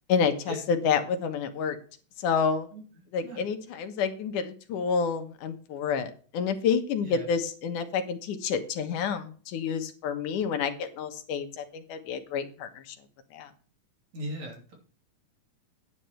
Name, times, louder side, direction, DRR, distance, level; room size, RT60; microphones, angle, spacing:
voice 1, 0.1-1.8 2.2-2.7 3.1-13.0 13.3-13.5, left 6 dB, 90° left, 7 dB, 2.8 m, -29 dB
voice 2, 14.1-14.7, right 1 dB, 65° right, 1 dB, 4.3 m, -38 dB
9.9 x 9.7 x 4.4 m, 0.40 s
omnidirectional pair, 3.5 m